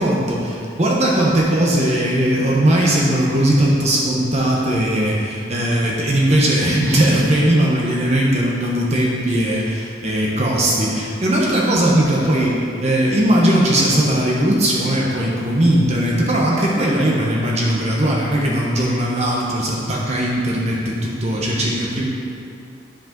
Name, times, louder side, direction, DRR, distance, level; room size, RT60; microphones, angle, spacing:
voice 1, 0.0-22.1, right 1 dB, 35° right, -4 dB, 1.0 m, -18 dB
10.5 x 5.1 x 3.9 m, 2.5 s
head